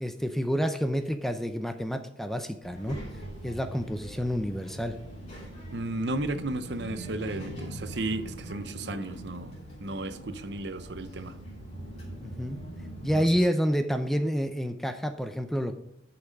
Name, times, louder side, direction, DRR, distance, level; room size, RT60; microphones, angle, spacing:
voice 1, 0.0-3.0 3.4-4.9 12.2-12.6 13.0-15.8, equal, ahead, 7 dB, 0.5 m, -28 dB
Child speech kid speaking, 2.6-13.4, right 1 dB, 35° left, 3.1 m, -42 dB
voice 2, 5.7-9.5 9.8-11.4 13.1-13.3, right 2 dB, 60° right, 11 dB, 0.7 m, -34 dB
9.8 x 6.0 x 5.2 m, 0.81 s
head